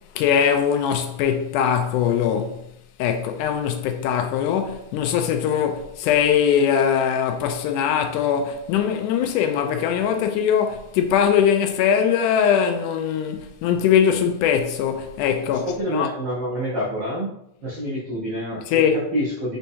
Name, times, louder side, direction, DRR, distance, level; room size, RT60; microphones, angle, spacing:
voice 1, 0.2-2.6 3.0-16.1 18.7-19.0, left 8 dB, 85° left, 2.1 m, -21 dB
voice 2, 15.7-17.3 17.6-19.6, equal, 85° right, 1.0 m, -27 dB
4.5 x 4.3 x 2.7 m
omnidirectional pair, 3.6 m